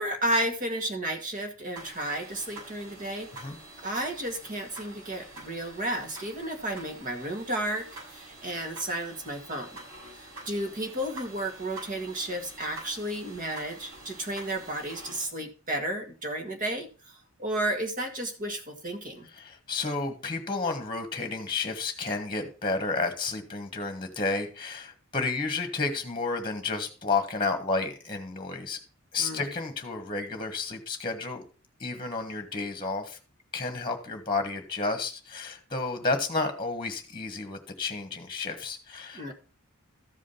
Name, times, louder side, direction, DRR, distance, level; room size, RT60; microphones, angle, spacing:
voice 1, 0.0-3.3 3.8-7.9 8.1-9.7 10.1-16.9 17.4-19.3 29.2-29.5 39.1-39.3, right 1 dB, 40° right, 4 dB, 1.8 m, -32 dB
sound 1, 1.8-15.3, right 2 dB, 90° right, 6.7 m, -47 dB
voice 2, 19.3-28.8 29.1-31.4 31.8-33.2 33.5-39.3, left 3 dB, 20° left, 7 dB, 1.5 m, -31 dB
14.0 x 5.0 x 5.6 m, 0.35 s
head